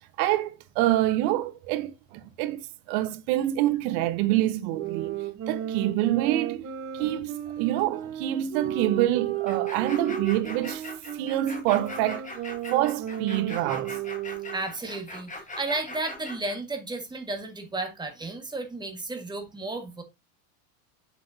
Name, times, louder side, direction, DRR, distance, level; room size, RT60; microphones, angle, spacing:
voice 1, 0.2-6.7 6.9-10.9 11.1-12.3 12.7-14.0, right 14 dB, 60° right, 1.2 m, -26 dB
sound 1, 4.7-14.7, right 10 dB, 30° right, 1.4 m, -34 dB
sound 2, 9.5-16.6, left 1 dB, 15° left, 3.1 m, -41 dB
voice 2, 14.5-20.0, right 2 dB, 10° right, 1.7 m, -33 dB
7.6 x 6.4 x 2.7 m
supercardioid pair, 145°, 49 cm